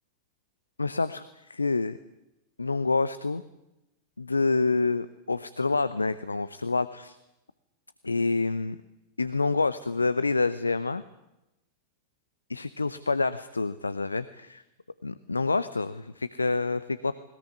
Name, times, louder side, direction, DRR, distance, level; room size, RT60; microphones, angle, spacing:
voice 1, 0.8-1.2 1.5-2.0 2.6-3.4 4.2-7.2 8.0-8.8 9.2-11.0 12.5-14.6 15.0-17.1, left 3 dB, 80° left, 15 dB, 0.8 m, -27 dB
21.0 x 20.0 x 9.5 m, 0.94 s
figure-of-eight pair, 90°, 0 cm